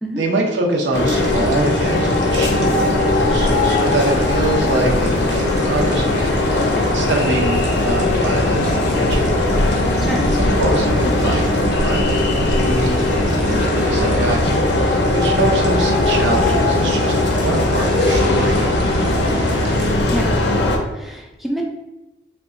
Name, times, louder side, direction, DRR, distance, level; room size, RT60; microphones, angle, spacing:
voice 1, 0.2-9.4 10.3-14.4 15.1-17.1 17.4-19.0, right 2 dB, 80° right, 0 dB, 0.6 m, -25 dB
sound 1, 0.9-20.8, left 2 dB, 65° left, 0.4 m, -18 dB
sound 2, 1.2-19.9, right 1 dB, 40° right, 0.7 m, -32 dB
voice 2, 20.9-21.6, equal, ahead, -1 dB, 0.3 m, -26 dB
2.9 x 2.2 x 3.6 m, 1.0 s
head